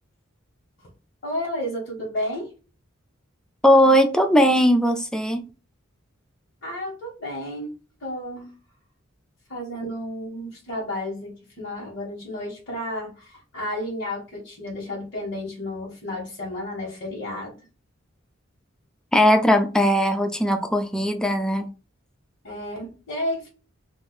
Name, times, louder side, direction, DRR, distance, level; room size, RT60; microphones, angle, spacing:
voice 1, 1.2-2.5 6.6-7.7 8.0-8.5 9.5-17.5 22.4-23.5, left 1 dB, 65° left, 1.3 m, -32 dB
voice 2, 3.6-5.4 19.1-21.7, equal, 5° left, 0.4 m, -19 dB
2.6 x 2.5 x 3.9 m
head